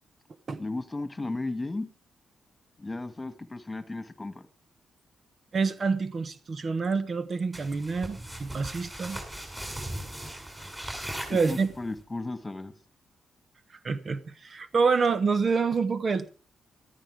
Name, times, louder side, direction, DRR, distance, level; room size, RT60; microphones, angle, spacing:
voice 1, 0.6-1.9 2.8-4.5 11.3-12.7, left 2 dB, 20° left, 1.8 m, -35 dB
voice 2, 5.5-9.2 11.3-11.7 13.8-16.3, right 4 dB, 50° right, 1.1 m, -27 dB
sound 1, 7.5-12.0, right 1 dB, 20° right, 7.0 m, -39 dB
14.0 x 14.0 x 4.8 m
cardioid pair, 75°, 0 cm